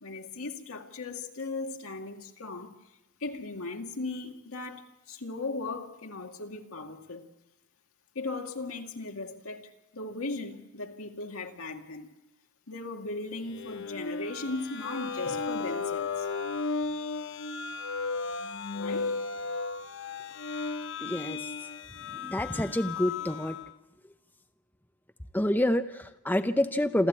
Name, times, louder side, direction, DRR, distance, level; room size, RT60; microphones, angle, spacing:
voice 1, 0.0-2.7 3.2-7.3 8.1-12.1 12.7-16.3 18.8-19.2, left 3 dB, 70° left, 2.2 m, -37 dB
sound 1, 13.5-23.7, left 4 dB, 55° left, 0.9 m, -35 dB
voice 2, 21.0-21.5 22.1-23.6 25.3-27.1, left 1 dB, 10° left, 0.7 m, -28 dB
28.0 x 14.0 x 8.4 m
head